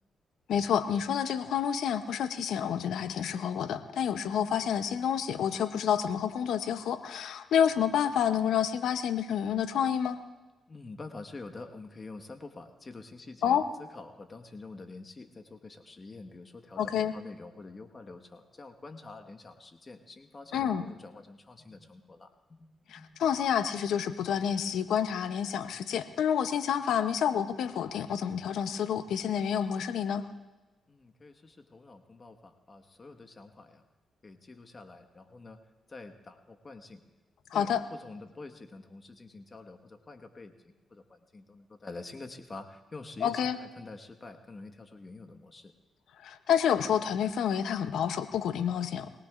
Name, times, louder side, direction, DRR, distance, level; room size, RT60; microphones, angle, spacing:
voice 1, 0.5-10.2 13.4-13.7 16.8-17.1 20.5-20.9 22.9-30.3 37.5-37.8 43.2-43.6 46.2-49.1, left 8 dB, 75° left, 11 dB, 0.7 m, -29 dB
voice 2, 10.7-22.7 23.0-23.1 30.9-33.8 34.2-35.6 35.9-37.0 37.5-45.7, left 3 dB, 40° left, 6 dB, 1.4 m, -47 dB
21.5 x 18.5 x 2.5 m, 1.1 s
supercardioid pair, 50°, 0 cm